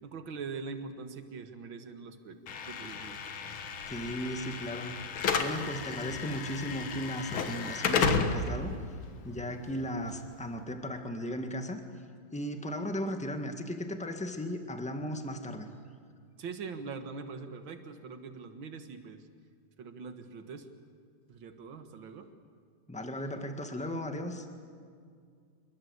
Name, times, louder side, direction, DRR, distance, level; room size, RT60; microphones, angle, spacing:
voice 1, 0.0-2.4 2.6-3.3 16.4-19.2 19.8-20.7 21.3-22.3, right 5 dB, 75° right, 7 dB, 2.4 m, -42 dB
Slam / Alarm, 2.5-10.5, left 5 dB, 90° left, 2.3 m, -33 dB
voice 2, 3.9-4.9 5.4-8.7 9.2-11.8 12.3-15.7 22.9-24.5, equal, 5° left, 5 dB, 1.6 m, -36 dB
27.5 x 22.5 x 8.2 m, 2.1 s
omnidirectional pair, 2.2 m